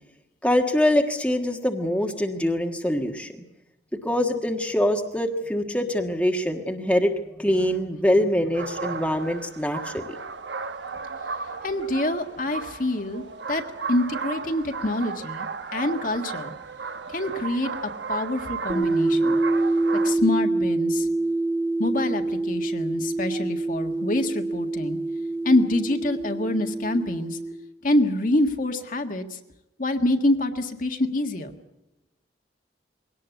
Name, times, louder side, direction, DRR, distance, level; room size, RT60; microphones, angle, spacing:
voice 1, 0.4-3.4 4.0-7.1 7.4-10.0, left 1 dB, 5° left, 3 dB, 1.4 m, -24 dB
sound 1, 8.5-20.1, right 5 dB, 80° right, 1.1 m, -35 dB
voice 2, 11.6-13.2 13.5-13.6 13.9-15.5 15.7-16.5 17.1-17.7 18.1-19.4 20.0-21.1 21.8-25.0 25.4-27.4 27.8-29.4 29.8-31.5, left 1 dB, 50° left, 5 dB, 1.7 m, -26 dB
sound 2, 18.7-27.5, right 2 dB, 25° right, 2.5 m, -26 dB
22.5 x 18.0 x 8.2 m, 0.97 s
head